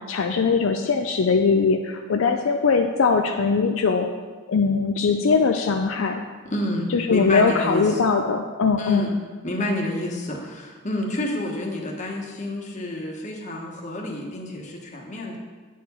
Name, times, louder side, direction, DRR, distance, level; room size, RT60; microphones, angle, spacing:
voice 1, 0.0-4.1 4.5-6.2 6.9-9.1, left 5 dB, 65° left, 4 dB, 0.4 m, -21 dB
voice 2, 6.4-8.1 8.8-9.1 9.4-15.4, left 1 dB, 35° left, 0 dB, 1.2 m, -29 dB
9.3 x 4.7 x 5.4 m, 1.4 s
head